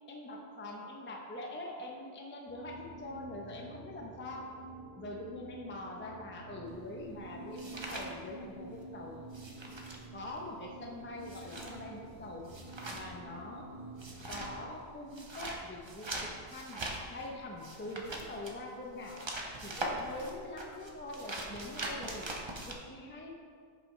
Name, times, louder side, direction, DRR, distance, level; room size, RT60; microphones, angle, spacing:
voice 1, 0.1-4.5 5.0-9.2 10.1-12.5 12.9-13.7 14.3-16.8 17.1-19.3 19.6-22.3 22.7-23.3, left 1 dB, 15° left, 0 dB, 0.5 m, -44 dB
sound 1, 2.5-14.7, right 2 dB, 70° left, 1.6 m, -49 dB
sound 2, 6.7-8.8 9.1-22.7, right 1 dB, 30° right, 0.6 m, -42 dB
8.3 x 5.5 x 3.2 m, 2.1 s
omnidirectional pair, 1.1 m